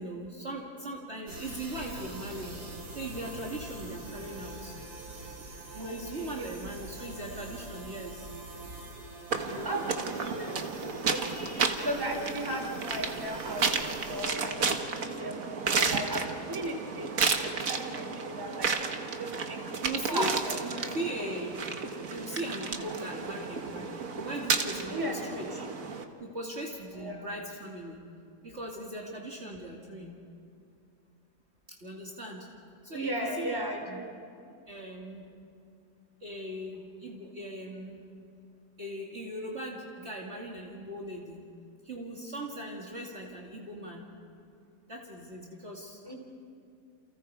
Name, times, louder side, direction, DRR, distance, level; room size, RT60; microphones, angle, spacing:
voice 1, 0.0-2.6 2.9-4.7 5.7-8.3 9.3-10.6 19.8-20.4 20.6-21.6 22.1-23.9 24.2-25.5 26.2-28.0 28.4-30.2 31.8-32.5 32.8-34.0 34.7-35.2 36.2-38.0 38.8-41.4 41.8-44.0 44.9-46.0, right 1 dB, 40° right, -2 dB, 2.6 m, -39 dB
sound 1, 1.3-14.3, right 2 dB, 80° right, 3.9 m, -44 dB
voice 2, 5.8-6.4 9.3-10.5 11.0-19.7 20.1-20.3 20.7-20.9 24.9-25.2 25.5-25.7 26.9-27.3 32.9-34.1 46.0-46.1, right 1 dB, 15° right, 2 dB, 3.0 m, -37 dB
sound 2, 9.3-26.0, right 5 dB, 55° right, 1.7 m, -32 dB
29.5 x 29.0 x 4.8 m, 2.5 s
omnidirectional pair, 1.8 m